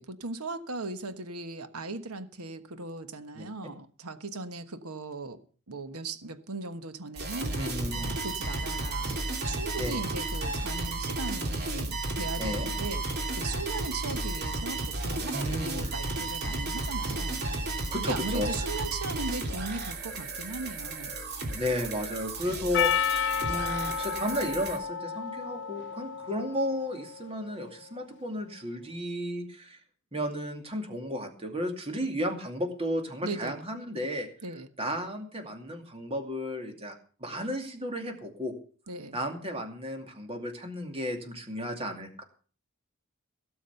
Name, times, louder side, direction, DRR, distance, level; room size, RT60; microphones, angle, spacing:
voice 1, 0.0-5.4 5.7-7.6 8.0-9.2 9.5-17.4 18.0-21.1 33.2-33.6 34.4-34.7 38.9-39.2, right 3 dB, 80° right, 1.3 m, -38 dB
sound 1, 7.2-24.8, right 2 dB, 45° right, 2.8 m, -33 dB
voice 2, 7.5-8.1 9.8-10.1 12.4-12.7 15.3-15.9 17.9-18.5 21.5-29.8 30.1-34.3 34.8-38.5 39.1-42.2, equal, 25° right, 2.5 m, -33 dB
Percussion, 22.7-27.3, left 8 dB, 55° left, 0.8 m, -31 dB
17.0 x 7.2 x 6.9 m
head